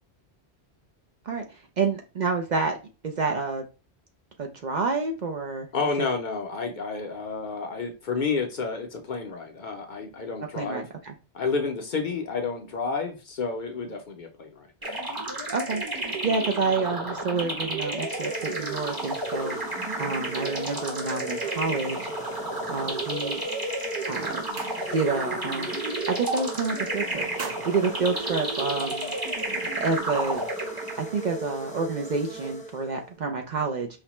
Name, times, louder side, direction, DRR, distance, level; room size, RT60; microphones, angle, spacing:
voice 1, 1.3-2.8 3.0-3.6 4.4-5.7 10.5-11.1 15.5-22.0 22.7-23.4 24.1-24.4 24.9-25.7 26.1-29.2 29.8-30.4 30.9-33.9, right 4 dB, 55° right, 3 dB, 0.6 m, -29 dB
voice 2, 5.7-10.8 11.3-14.9, left 4 dB, 55° left, 4 dB, 0.6 m, -30 dB
sound 1, 14.8-31.2, right 2 dB, 20° right, 0.8 m, -32 dB
sound 2, 18.0-33.2, right 1 dB, 10° left, 0.3 m, -39 dB
sound 3, 24.4-25.3 25.6-25.9 26.2-26.8 27.1-29.0, right 5 dB, 75° right, 0.9 m, -42 dB
4.9 x 2.1 x 2.9 m, 0.32 s
omnidirectional pair, 1.1 m